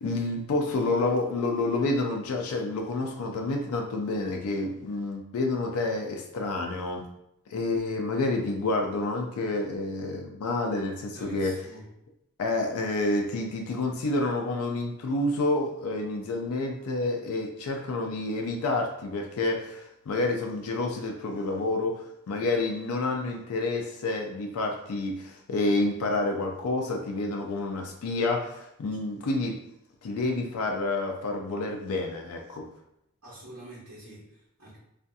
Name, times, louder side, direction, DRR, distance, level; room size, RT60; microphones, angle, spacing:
voice 1, 0.0-7.0 7.5-11.5 12.4-29.6 30.0-32.7, left 2 dB, 75° left, 2 dB, 0.4 m, -29 dB
voice 2, 11.1-11.9 33.2-34.8, right 1 dB, 70° right, -10 dB, 1.1 m, -46 dB
2.6 x 2.4 x 2.3 m, 0.80 s
head